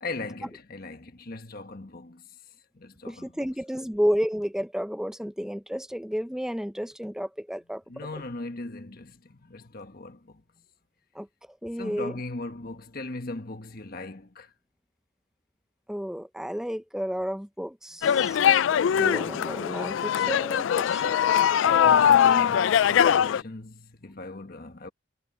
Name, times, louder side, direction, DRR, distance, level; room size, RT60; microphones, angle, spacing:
voice 1, 0.0-2.2 2.7-3.5 7.9-10.4 11.8-14.5 18.9-19.3 21.6-24.9, left 2 dB, 45° left, 1.4 m, -38 dB
voice 2, 3.0-7.8 11.1-11.3 11.6-12.2 15.9-18.4 18.9-21.5, equal, 5° right, 0.7 m, -31 dB
sound 1, 18.0-23.4, left 9 dB, 65° left, 0.3 m, -21 dB
head